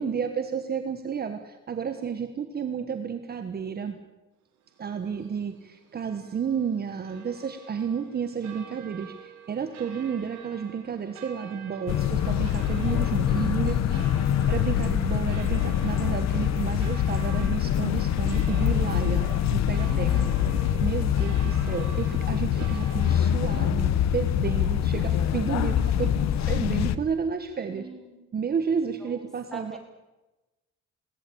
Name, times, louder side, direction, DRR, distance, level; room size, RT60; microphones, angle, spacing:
voice 1, 0.0-4.0 4.8-14.0 14.5-20.2 20.8-27.9 28.3-29.8, right 6 dB, 30° right, 7 dB, 1.4 m, -31 dB
sound 1, 4.6-23.2, right 8 dB, 70° right, 4.2 m, -47 dB
sound 2, 11.9-27.0, left 10 dB, 65° left, 1.1 m, -25 dB
voice 2, 13.3-14.1 19.7-20.3 25.0-25.3 25.7-25.8 26.2-26.3 27.7-28.2 29.0-29.2 29.5-29.8, right 1 dB, ahead, 5 dB, 4.1 m, -43 dB
22.0 x 18.0 x 8.7 m, 1.1 s
cardioid pair, 150°, 29 cm